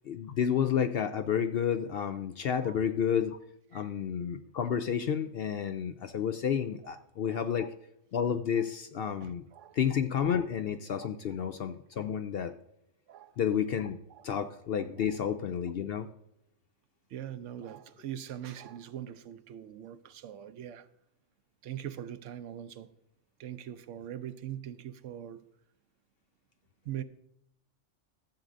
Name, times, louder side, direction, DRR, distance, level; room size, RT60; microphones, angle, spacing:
voice 1, 0.1-3.4 3.7-7.7 8.1-9.4 9.7-12.5 13.4-14.0 14.2-16.1, left 8 dB, 65° left, 0.6 m, -30 dB
voice 2, 9.2-9.8 13.1-13.3 14.1-14.2 17.1-20.9 21.6-22.9 23.4-25.4 26.9-27.0, right 10 dB, 75° right, 0.9 m, -42 dB
13.0 x 7.4 x 2.6 m
omnidirectional pair, 1.3 m